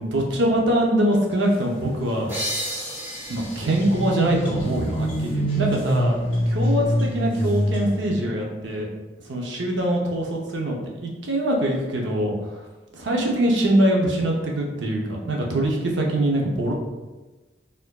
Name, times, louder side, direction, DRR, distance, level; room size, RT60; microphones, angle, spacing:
voice 1, 0.0-2.3 3.3-6.2 6.5-8.9 9.3-10.8 11.0-12.3 12.9-16.7, right 1 dB, 75° right, -1 dB, 0.7 m, -23 dB
sound 1, 2.3-5.7, equal, 15° right, 0.8 m, -34 dB
sound 2, 3.1-3.2 3.4-8.1, equal, 25° left, 0.9 m, -25 dB
4.3 x 2.5 x 2.2 m, 1.2 s
head